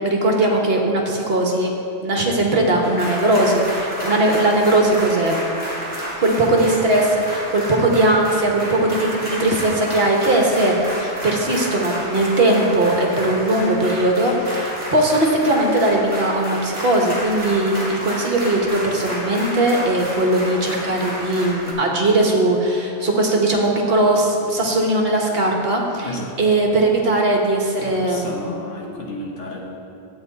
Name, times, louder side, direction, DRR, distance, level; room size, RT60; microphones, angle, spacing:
voice 1, 0.0-1.7 2.0-5.4 6.2-26.1 26.4-28.5, right 1 dB, 55° right, 0 dB, 1.4 m, -19 dB
sound 1, 2.8-21.7, right 1 dB, 25° right, 2.3 m, -30 dB
voice 2, 26.0-26.7 27.8-29.8, left 1 dB, 75° left, -1 dB, 1.6 m, -33 dB
11.0 x 8.1 x 4.0 m, 2.8 s
omnidirectional pair, 1.3 m